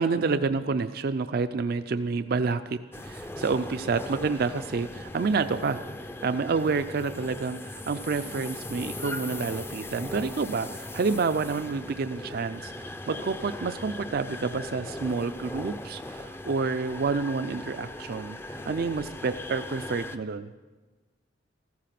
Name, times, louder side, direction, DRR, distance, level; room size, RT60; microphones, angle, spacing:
voice 1, 0.0-5.8 6.2-20.5, right 4 dB, 55° right, 10 dB, 0.4 m, -29 dB
sound 1, 2.9-20.2, left 1 dB, 15° left, 0.5 m, -39 dB
14.5 x 14.5 x 5.8 m, 1.3 s
head